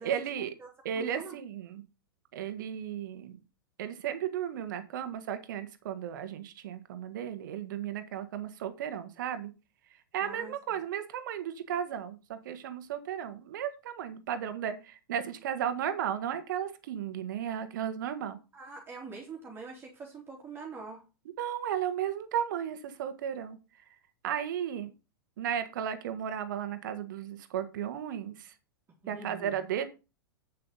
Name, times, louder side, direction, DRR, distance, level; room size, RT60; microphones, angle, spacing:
voice 1, 0.0-0.5 0.8-1.8 2.3-3.4 3.8-9.5 10.1-18.4 21.4-23.6 24.2-24.9 25.4-28.5 29.1-29.8, right 9 dB, 60° right, 10 dB, 1.7 m, -34 dB
voice 2, 0.6-1.4 10.2-10.5 18.5-21.0 29.0-29.7, right 4 dB, 20° right, -1 dB, 2.9 m, -44 dB
8.6 x 8.0 x 4.0 m, 0.29 s
figure-of-eight pair, 100°, 12 cm